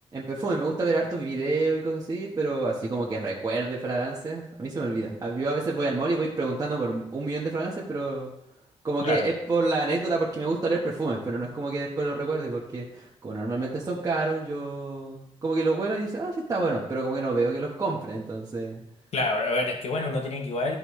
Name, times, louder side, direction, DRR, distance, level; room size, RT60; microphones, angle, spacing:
voice 1, 0.1-8.3 8.8-18.8, right 3 dB, 30° right, -6 dB, 1.3 m, -28 dB
voice 2, 19.1-20.8, left 2 dB, 65° left, 2 dB, 1.1 m, -27 dB
13.0 x 5.4 x 3.2 m, 0.85 s
wide cardioid pair, 180°, 12 cm